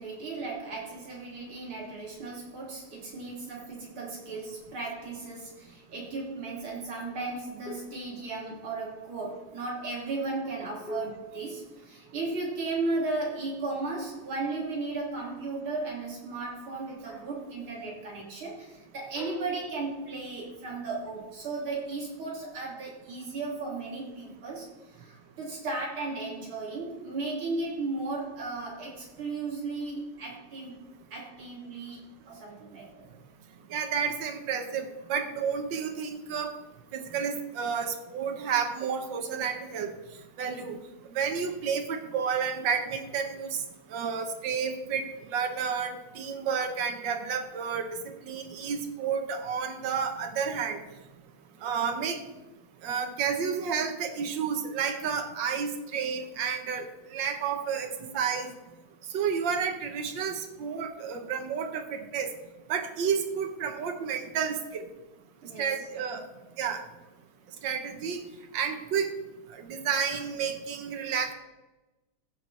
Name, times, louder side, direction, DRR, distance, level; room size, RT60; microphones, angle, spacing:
voice 1, 0.0-30.8 31.1-33.1 65.4-65.7, right 3 dB, 45° right, -4 dB, 3.7 m, -35 dB
sound 1, 7.6-8.6 10.9-12.6 15.2-15.6 17.0-17.5 19.2-20.4, left 1 dB, 35° left, 4.2 m, -45 dB
voice 2, 33.7-36.5 36.9-39.9 40.4-40.8 41.1-43.6 43.9-50.8 51.6-52.2 52.8-58.5 59.1-62.3 62.7-64.9 65.6-66.2 66.6-66.8 67.6-68.2 68.5-69.1 69.5-71.3, right 6 dB, 80° right, 5 dB, 1.0 m, -31 dB
15.0 x 6.5 x 4.1 m, 1.0 s
omnidirectional pair, 3.3 m